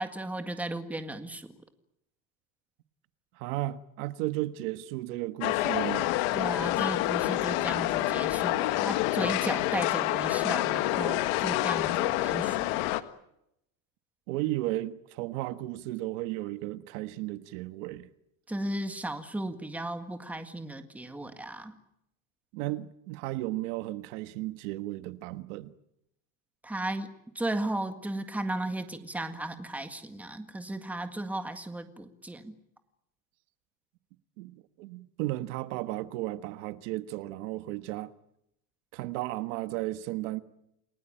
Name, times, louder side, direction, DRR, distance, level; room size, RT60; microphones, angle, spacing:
voice 1, 0.0-1.5 6.3-12.8 18.5-21.8 26.6-27.1 27.4-32.6, right 1 dB, 5° right, 1.8 m, -35 dB
voice 2, 3.4-6.1 14.3-18.1 22.5-25.7 34.4-38.1 38.9-40.4, right 17 dB, 75° right, 1.5 m, -34 dB
sound 1, 5.4-13.0, left 16 dB, 65° left, 1.7 m, -27 dB
29.0 x 19.0 x 9.0 m
cardioid pair, 160°, 38 cm